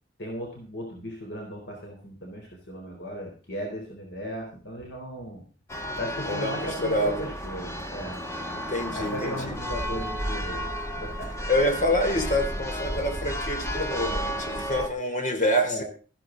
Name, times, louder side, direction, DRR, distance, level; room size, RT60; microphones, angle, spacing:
voice 1, 0.2-5.4 6.0-8.2 8.9-10.7 11.0-11.3 15.0-15.1 15.6-15.8, equal, 80° left, 1 dB, 3.9 m, -36 dB
Church bell, 5.7-14.9, equal, 15° left, 1.5 m, -32 dB
voice 2, 6.3-7.3 8.5-9.5 11.5-15.8, left 1 dB, 45° left, 5 dB, 3.7 m, -27 dB
14.5 x 12.5 x 3.9 m, 0.38 s
head